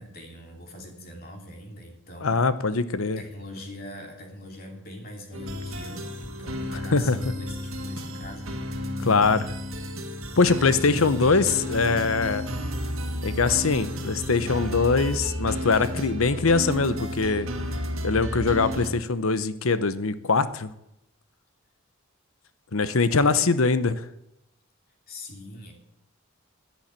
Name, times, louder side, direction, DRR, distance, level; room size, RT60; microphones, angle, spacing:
voice 1, 0.0-2.4 3.2-8.6 23.1-23.5 25.1-25.7, left 1 dB, 45° left, 2 dB, 2.8 m, -42 dB
voice 2, 2.2-3.2 6.9-7.2 9.0-9.5 10.4-12.4 13.2-17.5 18.0-20.7 22.7-24.0, left 4 dB, 80° left, 14 dB, 0.9 m, -22 dB
sound 1, 5.3-18.9, equal, 75° right, 1.9 m, -32 dB
10.5 x 10.5 x 8.9 m, 0.83 s
head